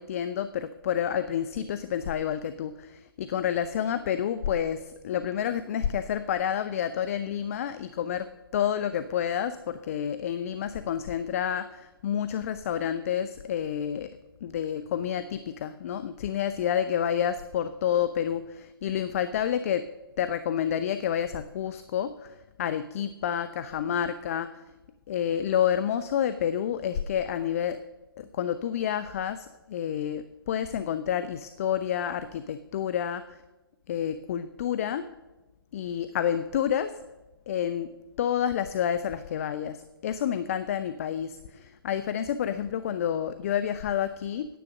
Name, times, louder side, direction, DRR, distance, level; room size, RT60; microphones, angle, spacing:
voice 1, 0.0-14.1 14.4-19.8 20.2-24.5 25.1-27.8 28.2-33.4 33.9-35.1 35.7-36.9 37.5-44.5, left 9 dB, 35° left, 12 dB, 0.4 m, -29 dB
10.0 x 7.5 x 6.3 m, 1.1 s
figure-of-eight pair, 135°, 13 cm